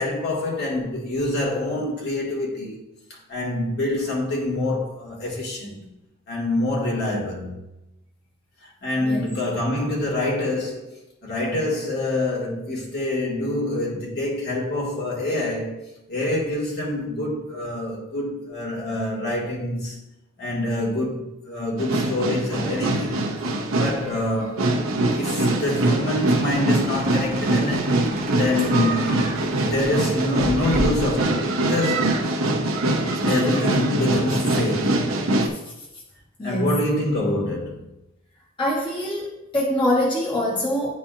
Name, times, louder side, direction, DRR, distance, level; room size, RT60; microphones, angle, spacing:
voice 1, 0.0-2.8 3.1-5.8 6.3-7.5 8.6-15.8 16.1-20.0 20.4-23.2 23.8-28.0 28.3-29.1 29.6-32.3 33.2-35.2 36.4-37.9, left 1 dB, 55° left, 1.8 m, -26 dB
sound 1, 21.8-35.5, right 2 dB, 75° right, 0.8 m, -23 dB
sound 2, 26.1-31.2, right 2 dB, 45° right, 1.0 m, -34 dB
voice 2, 36.4-36.8 38.6-40.9, left 1 dB, 25° left, 1.2 m, -24 dB
10.0 x 4.1 x 2.5 m
head